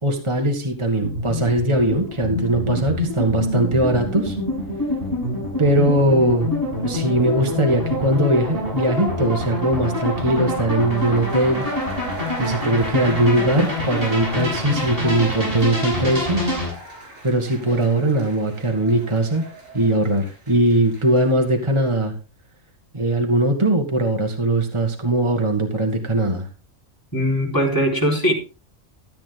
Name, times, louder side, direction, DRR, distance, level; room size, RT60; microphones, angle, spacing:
voice 1, 0.0-4.4 5.6-6.5 6.8-11.7 12.4-16.4 17.2-19.5 19.7-22.1 22.9-26.5, right 1 dB, 20° right, 3 dB, 1.9 m, -20 dB
sound 1, 1.0-16.7, left 2 dB, 45° right, 6.9 m, -26 dB
sound 2, 10.8-21.6 21.9-22.0, right 2 dB, 90° right, 4.5 m, -38 dB
voice 2, 27.1-28.3, equal, 15° left, -2 dB, 4.6 m, -20 dB
14.0 x 8.8 x 3.9 m, 0.31 s
omnidirectional pair, 1.3 m